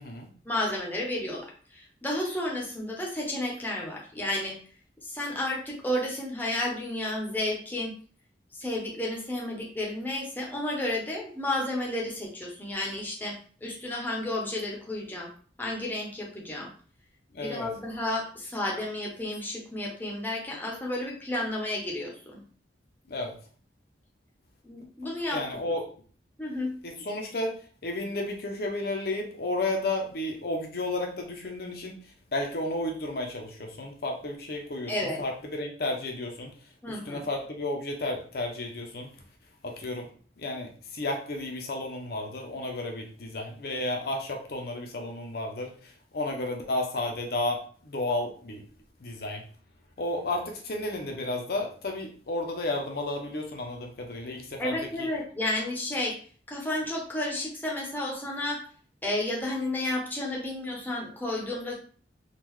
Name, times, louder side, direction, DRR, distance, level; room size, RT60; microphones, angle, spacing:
voice 1, 0.4-4.6 5.0-7.9 8.5-15.3 15.6-16.7 17.4-22.4 24.6-25.4 26.4-26.7 34.9-35.2 36.8-37.2 54.6-56.1 56.5-58.6 59.0-61.8, left 1 dB, 10° left, -2 dB, 0.7 m, -32 dB
voice 2, 17.3-17.7 23.1-23.4 25.3-25.9 26.8-27.6 27.8-32.0 32.3-36.5 36.9-39.1 39.6-40.1 40.4-48.6 49.0-49.4 50.0-55.1, left 2 dB, 55° left, 2 dB, 0.6 m, -32 dB
3.6 x 2.3 x 3.1 m, 0.44 s
head